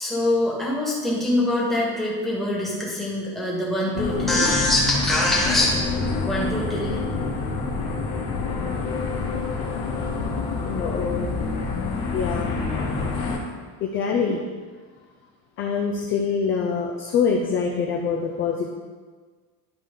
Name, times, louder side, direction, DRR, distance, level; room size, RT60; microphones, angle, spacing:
voice 1, 0.0-5.7 6.3-6.9, left 1 dB, ahead, -6 dB, 1.5 m, -23 dB
sound 1, 3.9-13.4, left 4 dB, 55° left, 1.7 m, -27 dB
voice 2, 10.6-11.3 12.1-12.5 13.8-14.4 15.6-18.7, left 6 dB, 30° left, 0 dB, 0.5 m, -24 dB
11.5 x 4.8 x 3.8 m, 1.5 s
cardioid pair, 180°, 44 cm